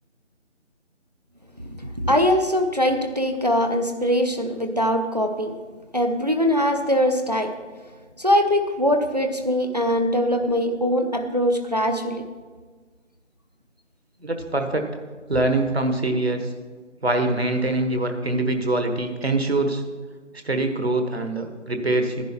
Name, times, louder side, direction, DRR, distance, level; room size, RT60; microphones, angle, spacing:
voice 1, 2.0-5.5 5.9-7.5 8.2-12.2, equal, 35° right, 6 dB, 0.7 m, -22 dB
voice 2, 14.2-14.8 15.3-16.5 17.0-19.8 20.4-22.2, right 2 dB, 55° right, 5 dB, 1.5 m, -23 dB
11.0 x 10.5 x 4.5 m, 1.4 s
figure-of-eight pair, 170°, 37 cm